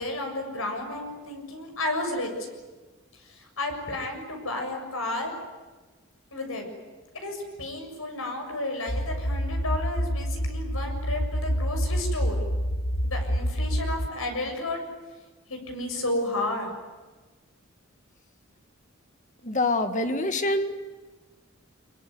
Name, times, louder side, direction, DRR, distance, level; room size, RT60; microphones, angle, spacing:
voice 1, 0.0-2.3 3.3-5.3 6.3-6.7 7.1-12.4 13.0-14.8 15.5-16.8, left 2 dB, 80° left, 4 dB, 7.0 m, -32 dB
sound 1, 8.9-14.1, equal, 60° left, 1.7 m, -27 dB
voice 2, 19.4-20.7, left 2 dB, 35° left, 8 dB, 2.0 m, -25 dB
26.0 x 23.0 x 9.6 m, 1.3 s
head